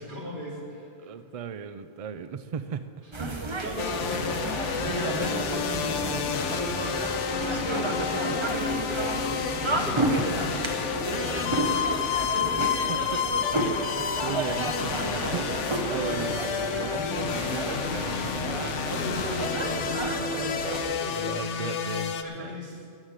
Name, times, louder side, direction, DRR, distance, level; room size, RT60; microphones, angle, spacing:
voice 1, 0.0-1.3 3.6-13.2 18.6-21.2 22.2-22.9, left 1 dB, 45° right, -4 dB, 2.9 m, -38 dB
voice 2, 1.0-2.8 5.2-5.3 8.3-8.4 11.5-11.6 12.9-13.5 13.8-18.4 21.1-22.6, right 7 dB, 65° right, 12 dB, 0.3 m, -37 dB
sound 1, 3.1-20.8, right 2 dB, 25° right, 0.9 m, -31 dB
sound 2, 3.8-22.2, left 7 dB, 85° left, 1.0 m, -30 dB
14.5 x 6.3 x 8.8 m, 2.3 s
omnidirectional pair, 1.2 m